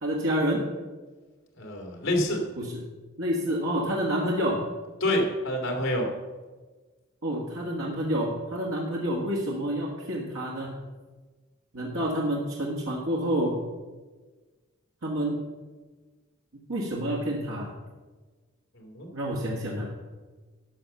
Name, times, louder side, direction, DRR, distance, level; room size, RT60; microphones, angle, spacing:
voice 1, 0.0-0.7 2.6-2.8 3.2-4.7 7.2-10.8 11.7-13.6 15.0-15.4 16.7-17.7 19.1-19.9, equal, 80° right, -2 dB, 1.6 m, -28 dB
voice 2, 1.6-2.4 5.0-6.1 18.8-19.1, left 1 dB, 75° left, 2 dB, 2.4 m, -27 dB
12.5 x 5.7 x 6.8 m, 1.3 s
head